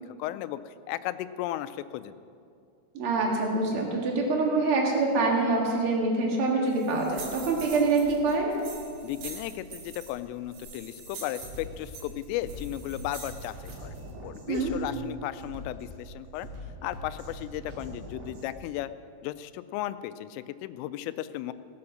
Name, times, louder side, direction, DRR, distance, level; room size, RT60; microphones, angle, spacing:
voice 1, 0.0-2.2 9.0-13.9 14.2-16.5 16.8-18.9 19.2-21.5, left 14 dB, 85° left, 13 dB, 3.1 m, -35 dB
voice 2, 2.9-8.5 14.5-14.7, right 3 dB, 70° right, -1 dB, 1.3 m, -25 dB
sound 1, 6.7-14.1, right 4 dB, 55° right, 3.2 m, -45 dB
Drum kit, 10.7-10.9 11.4-18.5, equal, 90° right, 4.9 m, -43 dB
18.5 x 8.6 x 6.4 m, 2.4 s
omnidirectional pair, 5.8 m